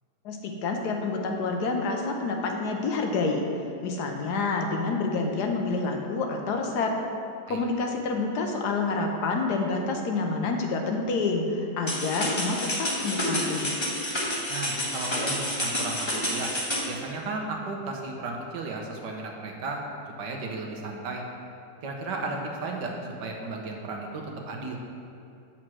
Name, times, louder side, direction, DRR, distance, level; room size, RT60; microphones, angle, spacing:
voice 1, 0.2-3.5 3.8-7.0 7.5-13.8, left 3 dB, 75° left, 2 dB, 1.3 m, -28 dB
sound 1, 11.9-16.9, left 1 dB, 20° left, 1.0 m, -29 dB
voice 2, 14.5-19.8 20.2-21.2 21.8-22.9 23.2-24.8, right 3 dB, 85° right, 1 dB, 1.6 m, -34 dB
7.7 x 4.5 x 6.2 m, 2.7 s
omnidirectional pair, 1.8 m